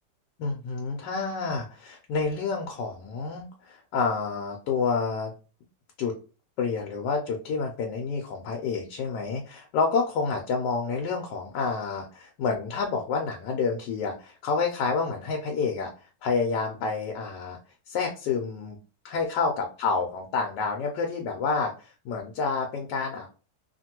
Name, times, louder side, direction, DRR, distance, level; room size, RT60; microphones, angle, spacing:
voice 1, 0.4-5.3 6.0-6.1 6.6-15.9 16.2-17.6 17.9-18.8 19.0-23.3, left 4 dB, 80° left, 1 dB, 1.2 m, -29 dB
2.8 x 2.5 x 2.8 m, 0.36 s
omnidirectional pair, 1.9 m